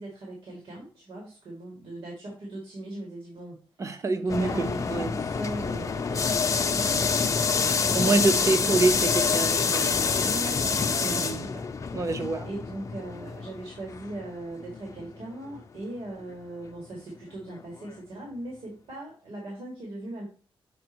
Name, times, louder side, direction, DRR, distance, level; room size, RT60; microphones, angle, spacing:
voice 1, 0.0-3.6 4.2-8.8 10.2-11.7 12.4-20.3, right 1 dB, 70° right, 2.3 m, -39 dB
voice 2, 3.8-5.2 6.2-6.4 7.8-10.3 11.0-11.4 11.9-12.5, right 3 dB, 35° right, 0.8 m, -27 dB
sound 1, 4.3-15.2 15.5-15.6 16.3-16.4 17.9-18.0, left 5 dB, 35° left, 0.5 m, -27 dB
7.5 x 4.3 x 3.0 m
wide cardioid pair, 130°, 10 cm